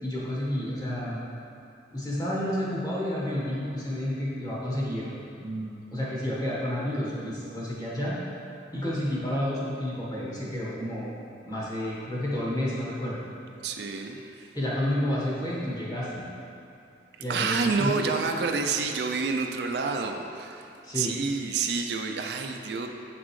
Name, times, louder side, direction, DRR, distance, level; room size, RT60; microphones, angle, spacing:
voice 1, 0.0-1.2 1.9-5.1 5.4-8.2 8.7-11.1 11.5-13.2 14.5-16.2 17.2-17.9 20.8-21.1, left 1 dB, 20° left, -7 dB, 1.3 m, -30 dB
voice 2, 13.6-14.5 17.3-22.9, right 4 dB, 65° right, 4 dB, 0.4 m, -29 dB
7.3 x 6.0 x 3.1 m, 2.6 s
head